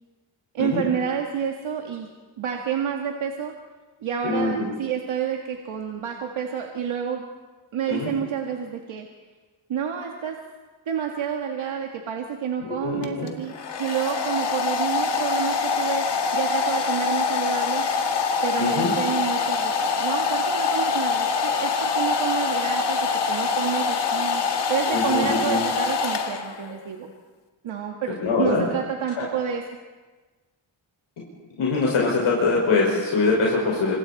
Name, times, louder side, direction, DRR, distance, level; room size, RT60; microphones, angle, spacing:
voice 1, 0.5-2.1 2.4-3.5 4.0-7.2 7.7-9.1 9.7-10.4 10.9-16.1 16.3-17.9 18.4-24.4 24.7-27.1 27.6-29.6, right 8 dB, 80° right, 1 dB, 2.0 m, -29 dB
voice 2, 4.2-4.7 7.9-8.1 12.6-13.3 18.6-18.9 24.9-25.6 28.2-28.6 29.2-29.3 31.6-34.0, left 3 dB, 85° left, -3 dB, 5.3 m, -23 dB
Domestic sounds home sounds, 13.0-26.8, left 5 dB, 60° left, 1.9 m, -24 dB
28.0 x 26.5 x 4.2 m, 1.3 s
wide cardioid pair, 165°, 48 cm